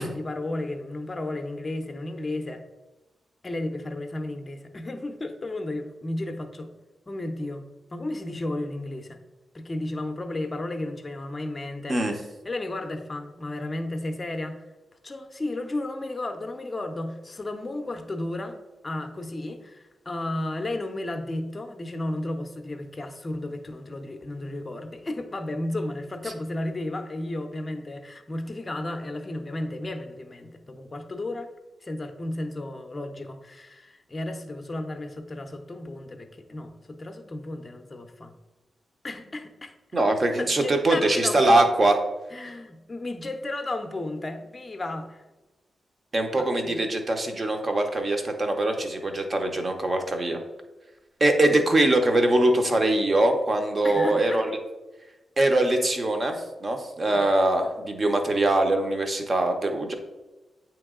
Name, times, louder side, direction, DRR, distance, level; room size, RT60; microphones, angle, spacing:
voice 1, 0.0-2.6 3.4-6.7 7.1-9.2 9.5-12.1 12.4-14.7 15.0-18.6 18.8-31.5 31.8-38.3 39.0-39.7 40.4-41.7 42.3-45.2 46.4-46.8 53.8-54.4 57.0-57.3, left 1 dB, 25° left, 7 dB, 0.6 m, -33 dB
voice 2, 39.9-42.0 46.1-50.4 51.2-54.5 55.4-59.9, right 2 dB, 30° right, 5 dB, 0.7 m, -22 dB
8.6 x 3.0 x 3.7 m, 1.1 s
wide cardioid pair, 125°, 0 cm